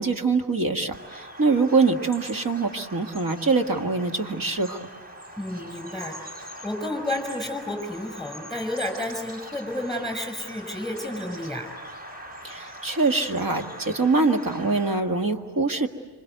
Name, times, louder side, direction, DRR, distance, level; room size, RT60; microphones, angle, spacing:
voice 1, 0.0-4.9 12.4-15.9, right 3 dB, 55° right, 4 dB, 1.9 m, -24 dB
Bird vocalization bird call bird song, 0.9-15.0, equal, 20° right, 4.8 m, -42 dB
voice 2, 5.4-11.7, left 1 dB, ahead, 6 dB, 5.8 m, -31 dB
27.0 x 25.5 x 8.1 m, 1.3 s
wide cardioid pair, 105°, 40 cm